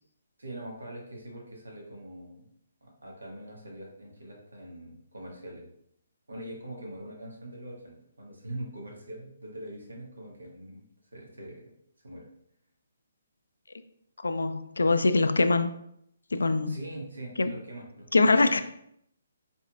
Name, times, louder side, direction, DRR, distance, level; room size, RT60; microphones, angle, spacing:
voice 1, 0.4-2.5 2.8-5.7 6.3-10.8 11.1-11.6 12.0-12.2 16.7-18.4, right 1 dB, 80° right, -1 dB, 1.3 m, -42 dB
voice 2, 14.2-15.7 16.3-16.8 17.4-17.5 18.1-18.6, left 3 dB, 75° left, 10 dB, 0.3 m, -23 dB
4.3 x 4.2 x 2.3 m, 0.72 s
figure-of-eight pair, 135°, 0 cm